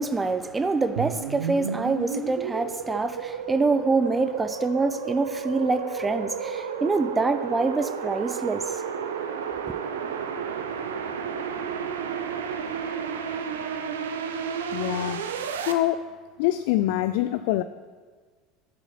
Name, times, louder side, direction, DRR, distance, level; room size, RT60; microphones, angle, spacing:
voice 1, 0.0-8.8 9.7-9.8, right 3 dB, 15° right, 0.8 m, -26 dB
sound 1, 1.0-15.7, right 6 dB, 70° right, 0.8 m, -32 dB
voice 2, 14.7-15.3 15.7-16.0 16.4-17.6, left 14 dB, 60° left, 0.3 m, -24 dB
11.5 x 7.0 x 5.8 m
figure-of-eight pair, 70°, 0 cm